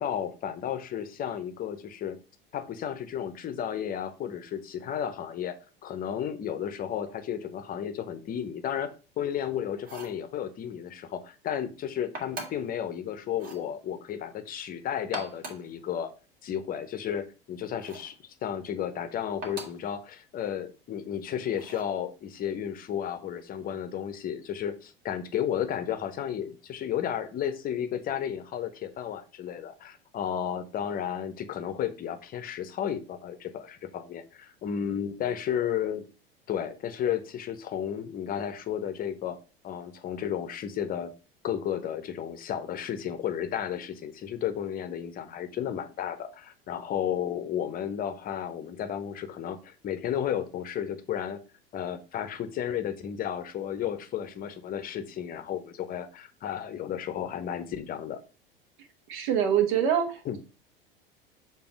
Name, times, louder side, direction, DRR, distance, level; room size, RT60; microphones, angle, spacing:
voice 1, 0.0-2.2 2.5-5.6 5.8-16.1 16.4-18.2 18.4-36.0 36.5-39.4 39.6-41.1 41.4-51.4 51.7-58.2 60.2-60.4, left 9 dB, 30° left, 10 dB, 0.8 m, -33 dB
sound 1, 9.8-10.2 12.1-12.7 13.3-13.7 15.0-15.7 17.8-18.2 19.4-19.9 21.6-22.0, right 2 dB, 30° right, 1.9 m, -41 dB
voice 2, 59.1-60.4, right 8 dB, 55° right, 7 dB, 1.2 m, -25 dB
6.9 x 2.7 x 5.1 m, 0.34 s
figure-of-eight pair, 75°, 29 cm